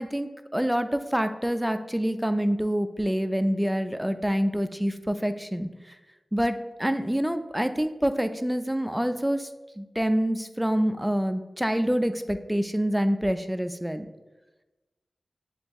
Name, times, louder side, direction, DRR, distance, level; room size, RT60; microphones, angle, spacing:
voice 1, 0.0-5.7 6.3-9.5 9.8-14.1, equal, 5° right, 9 dB, 0.3 m, -26 dB
7.0 x 2.6 x 2.3 m, 1.1 s
cardioid pair, 45°, 0 cm